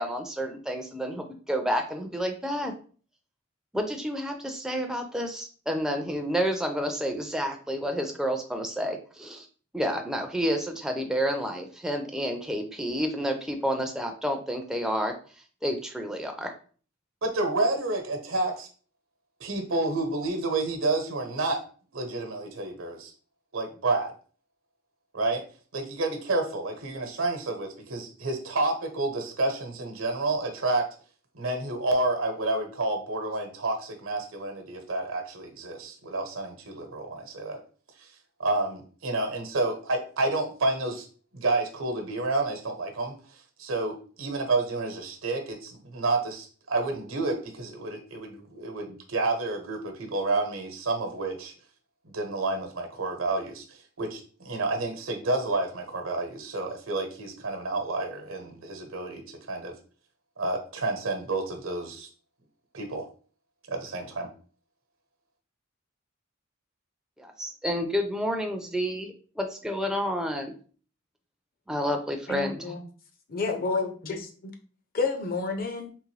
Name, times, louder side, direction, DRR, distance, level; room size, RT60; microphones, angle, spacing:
voice 1, 0.0-2.7 3.7-9.5 9.7-15.1 15.6-16.5 67.2-70.5 71.7-72.6, equal, 5° right, 3 dB, 0.4 m, -30 dB
voice 2, 17.2-18.7 19.4-21.6 21.9-23.1 23.5-24.1 25.1-25.4 25.7-30.9 31.3-37.6 38.0-38.1 38.4-41.0 41.3-43.1 43.6-51.5 52.0-59.7 60.4-62.1 62.7-63.1 63.7-64.3, right 2 dB, 85° right, 5 dB, 0.9 m, -29 dB
voice 3, 72.3-72.8 73.3-74.5 74.9-75.9, left 4 dB, 45° left, 5 dB, 0.6 m, -30 dB
3.7 x 3.0 x 3.2 m, 0.41 s
head